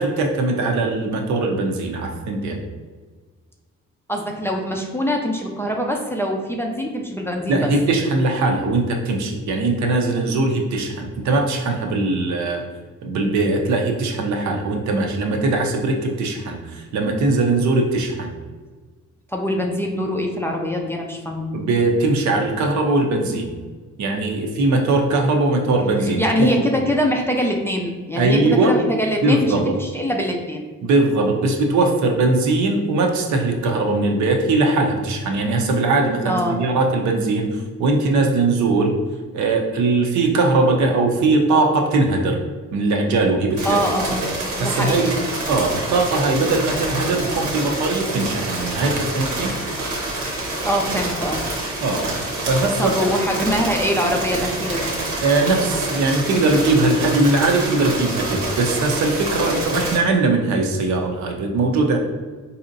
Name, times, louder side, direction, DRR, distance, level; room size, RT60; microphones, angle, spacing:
voice 1, 0.0-2.6 7.5-12.6 13.0-18.3 21.5-23.5 24.0-26.5 28.1-28.7 29.2-29.7 30.8-38.9 39.3-42.4 42.7-43.8 44.6-45.1 45.5-49.5 51.8-52.1 52.5-53.1 55.2-62.0, right 2 dB, 70° right, 2 dB, 0.6 m, -20 dB
voice 2, 4.1-7.7 19.3-21.5 26.2-30.6 36.2-36.6 43.6-44.3 44.6-45.1 50.6-51.4 52.8-54.9, equal, 10° left, 0 dB, 0.4 m, -23 dB
sound 1, 43.6-60.0, right 2 dB, 90° right, 1.1 m, -27 dB
4.1 x 2.7 x 2.6 m, 1.4 s
cardioid pair, 90°, 30 cm